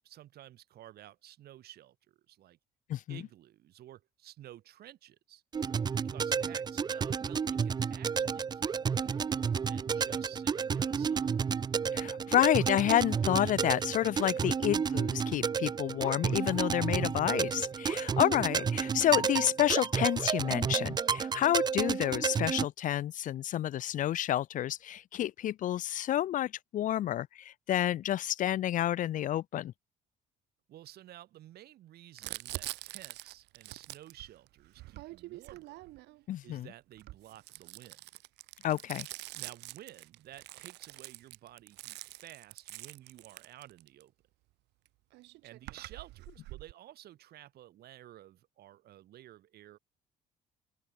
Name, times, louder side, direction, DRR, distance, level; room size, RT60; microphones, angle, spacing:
voice 1, 0.0-2.6 3.1-5.4 5.8-11.3 14.3-14.6 17.9-18.1 30.7-35.8 36.4-38.1 39.3-44.1 45.4-49.8, right 13 dB, 70° right, 7.9 m, -53 dB
sound 1, 5.5-22.7, right 6 dB, 25° right, 0.4 m, -31 dB
voice 2, 11.9-29.7 36.3-36.7 38.6-39.1, left 12 dB, 50° left, 0.4 m, -29 dB
Crumpling crinkling, 32.2-36.2 36.9-44.0 44.9-45.0 45.1-46.7, right 19 dB, 85° right, 3.8 m, -45 dB
cardioid pair, 110°, 17 cm